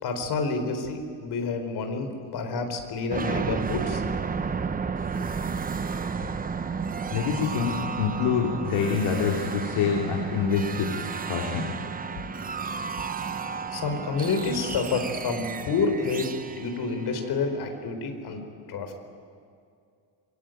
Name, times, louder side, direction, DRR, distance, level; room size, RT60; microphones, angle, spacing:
voice 1, 0.0-4.0 13.7-18.4 18.7-18.9, left 4 dB, 50° left, 6 dB, 4.2 m, -29 dB
sound 1, 3.1-17.8, right 5 dB, 20° right, 0.8 m, -32 dB
voice 2, 7.1-10.9 11.3-11.7, left 6 dB, 75° left, 1 dB, 3.1 m, -26 dB
26.5 x 24.0 x 9.2 m, 2.4 s
cardioid pair, 160°, 48 cm